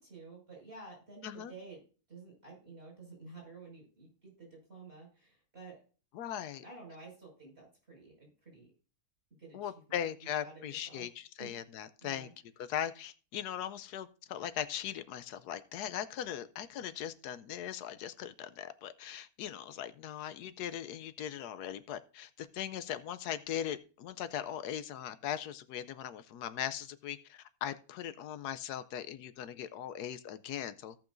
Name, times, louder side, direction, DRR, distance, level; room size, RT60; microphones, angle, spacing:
voice 1, 0.0-1.8 2.1-5.8 6.6-8.7 9.4-9.7 10.4-11.1 11.4-11.5 12.0-12.3, right 3 dB, 40° right, 5.8 m, -51 dB
voice 2, 6.1-6.6 9.5-12.3 12.6-30.9, left 10 dB, 85° left, 1.2 m, -39 dB
17.0 x 5.8 x 2.6 m
omnidirectional pair, 1.7 m